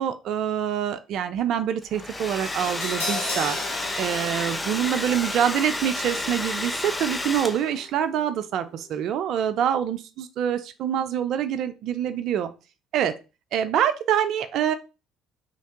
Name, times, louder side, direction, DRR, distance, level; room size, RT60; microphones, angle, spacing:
voice 1, 0.0-3.6 4.0-12.5 12.9-13.1 13.5-14.7, right 9 dB, 60° right, 10 dB, 0.3 m, -25 dB
Domestic sounds home sounds, 1.8-7.9, left 2 dB, 15° left, 0.4 m, -31 dB
Crash cymbal, 2.5-8.6 8.9-9.0, left 2 dB, 80° left, 0.8 m, -37 dB
3.2 x 2.8 x 2.8 m, 0.30 s
hypercardioid pair, 55°, 0 cm